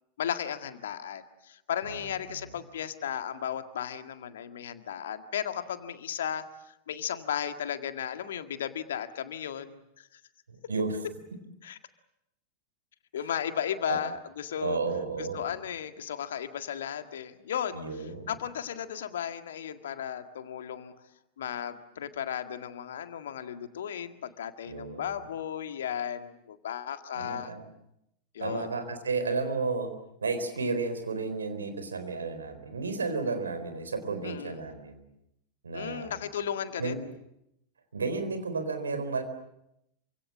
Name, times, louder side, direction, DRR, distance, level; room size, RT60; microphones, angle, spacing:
voice 1, 0.2-6.4 6.9-10.1 11.6-11.8 13.1-14.8 15.2-20.9 21.4-27.5 28.3-28.7 34.2-34.6 35.7-37.0, left 9 dB, 60° left, 8 dB, 1.9 m, -35 dB
voice 2, 10.5-11.0 13.9-14.0 14.6-15.5 17.7-18.3 24.7-25.1 27.1-27.6 28.4-29.9 30.2-35.0 35.6-36.1 36.8-37.0 37.9-39.2, right 4 dB, 70° right, 8 dB, 4.1 m, -32 dB
27.5 x 25.5 x 7.4 m, 0.81 s
figure-of-eight pair, 90°, 0 cm